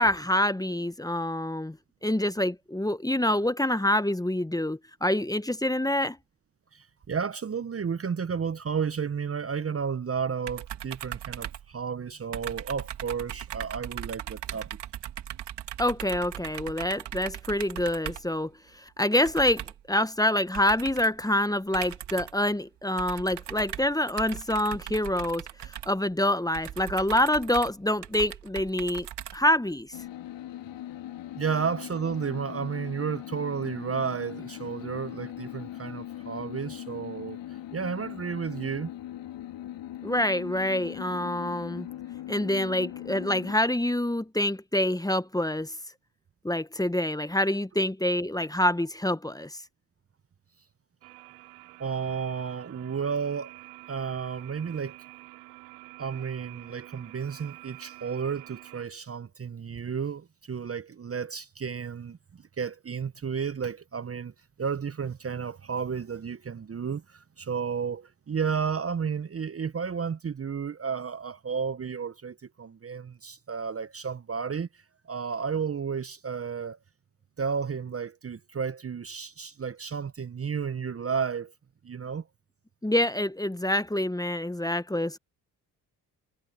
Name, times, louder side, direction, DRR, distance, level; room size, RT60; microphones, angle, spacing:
voice 1, 0.0-1.8 2.0-6.2 15.8-18.5 18.8-29.1 29.3-29.9 40.0-41.9 42.3-45.7 46.4-49.6 82.8-85.2, left 1 dB, 10° left, 1.3 m, -26 dB
voice 2, 6.7-14.8 31.4-37.4 37.7-38.9 51.8-53.5 53.9-55.0 56.0-62.2 62.6-64.3 64.6-74.7 75.1-76.8 77.4-81.5 81.8-82.2, right 6 dB, 30° right, 1.1 m, -32 dB
sound 1, 10.5-12.1 12.3-18.4 19.2-19.9 20.5-21.2 21.7-22.5 23.0-29.8, right 11 dB, 60° right, 3.4 m, -39 dB
sound 2, 29.9-43.6, left 12 dB, 65° left, 5.0 m, -40 dB
sound 3, 51.0-58.8, right 29 dB, 80° right, 3.6 m, -48 dB
hypercardioid pair, 50°, 47 cm